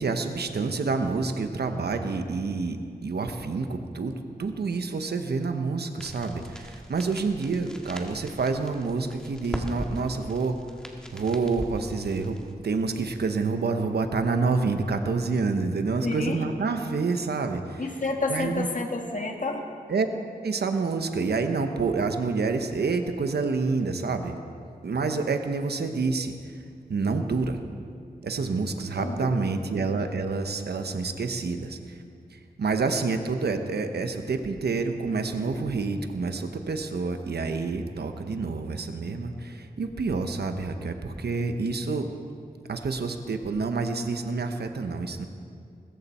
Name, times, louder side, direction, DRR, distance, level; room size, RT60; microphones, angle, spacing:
voice 1, 0.0-10.6 11.1-12.4 12.6-17.8 18.3-18.7 19.9-20.1 20.4-24.4 24.8-26.3 26.9-27.6 28.2-32.0 32.3-42.1 42.7-45.3, right 4 dB, 85° right, 7 dB, 1.0 m, -28 dB
sound 1, 6.0-12.5, equal, 5° left, 2.0 m, -40 dB
voice 2, 16.0-16.4 17.8-19.7 28.9-29.4, left 3 dB, 55° left, 2 dB, 1.9 m, -30 dB
20.5 x 14.0 x 4.4 m, 2.3 s
cardioid pair, 55°, 16 cm